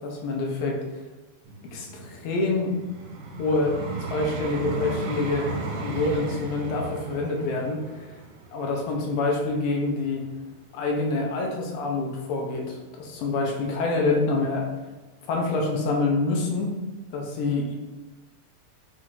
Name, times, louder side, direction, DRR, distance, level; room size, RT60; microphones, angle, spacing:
voice 1, 0.0-0.8 1.7-2.7 3.4-3.8 4.1-5.5 5.8-7.8 8.5-10.2 10.7-14.7 15.3-16.8 17.1-17.7, left 3 dB, 80° left, 0 dB, 2.1 m, -26 dB
Vehicle, 1.4-10.5 11.1-11.3, right 3 dB, 85° right, 2.0 m, -36 dB
5.9 x 2.4 x 2.9 m, 1.2 s
omnidirectional pair, 3.4 m